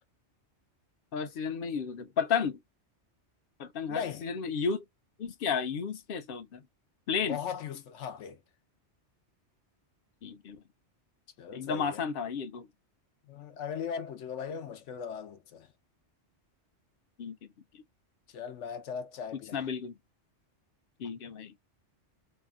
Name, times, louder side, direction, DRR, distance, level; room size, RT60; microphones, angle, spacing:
voice 1, 1.1-2.6 3.6-4.8 5.2-6.6 7.1-7.4 10.2-10.6 11.5-12.7 17.2-17.4 19.3-19.9 21.0-21.5, left 6 dB, 60° left, 0.7 m, -32 dB
voice 2, 3.9-4.2 7.3-8.4 11.4-12.0 13.3-15.7 18.3-19.7, left 7 dB, 85° left, 1.0 m, -38 dB
2.8 x 2.6 x 2.4 m
omnidirectional pair, 1.2 m